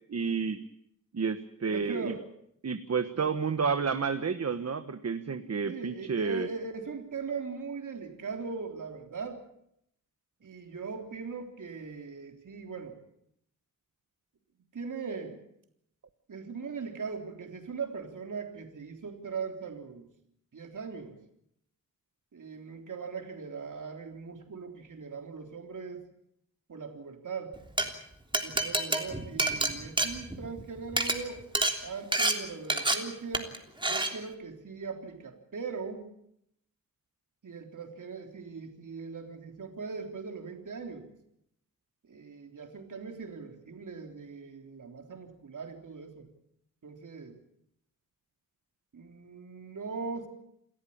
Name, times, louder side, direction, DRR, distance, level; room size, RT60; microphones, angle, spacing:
voice 1, 0.1-0.6 1.1-2.1 2.6-6.5, right 5 dB, 50° right, 9 dB, 1.3 m, -30 dB
voice 2, 1.7-2.2 3.1-3.3 5.6-9.4 10.4-13.0 14.7-15.4 16.3-20.1 20.5-21.2 22.3-26.1 26.7-27.5 28.4-31.5 31.8-36.1 37.4-41.1 42.1-46.3 46.8-47.4 48.9-50.3, right 5 dB, 70° right, 3 dB, 3.6 m, -40 dB
Glass, 27.6-27.8 28.3-30.6 30.9-31.1 31.5-31.7 32.1-32.3 32.7-32.9 33.3-33.6 33.8-34.1, right 2 dB, 15° right, 3.3 m, -27 dB
28.5 x 14.0 x 8.7 m, 0.77 s
wide cardioid pair, 90°, 32 cm